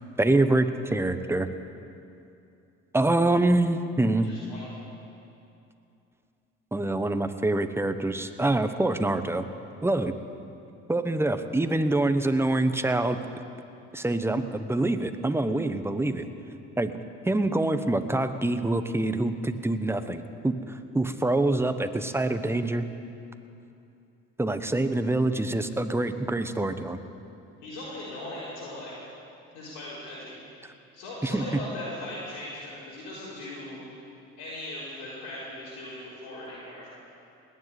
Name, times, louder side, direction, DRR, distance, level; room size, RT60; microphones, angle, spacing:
voice 1, 0.2-1.5 2.9-4.3 6.7-9.4 9.8-10.1 10.9-13.2 13.9-16.3 16.8-16.9 17.3-22.9 24.4-27.0 31.2-31.5, right 2 dB, 10° right, 9 dB, 1.0 m, -25 dB
voice 2, 4.1-4.7 27.6-28.9 29.5-30.4 30.9-33.8 34.4-36.9, left 1 dB, 80° left, -8 dB, 4.4 m, -39 dB
18.5 x 7.6 x 9.7 m, 2.7 s
supercardioid pair, 70°, 31 cm